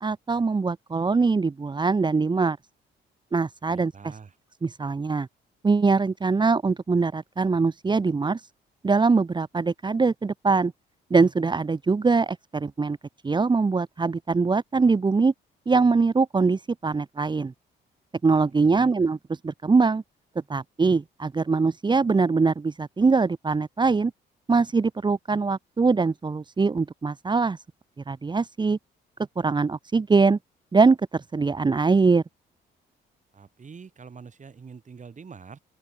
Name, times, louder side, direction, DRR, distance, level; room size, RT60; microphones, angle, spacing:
voice 1, 0.0-2.6 3.3-3.9 4.6-5.3 5.6-8.5 8.8-10.7 11.1-13.0 13.2-15.3 15.7-17.5 18.2-19.2 19.4-20.0 20.5-24.1 24.5-27.6 28.1-28.8 29.4-30.4 30.7-32.2, right 4 dB, 20° right, 0.9 m, -22 dB
voice 2, 3.7-4.4 18.5-18.9 33.3-35.6, right 5 dB, 40° right, 7.0 m, -45 dB
open air
cardioid pair, 90°, 20 cm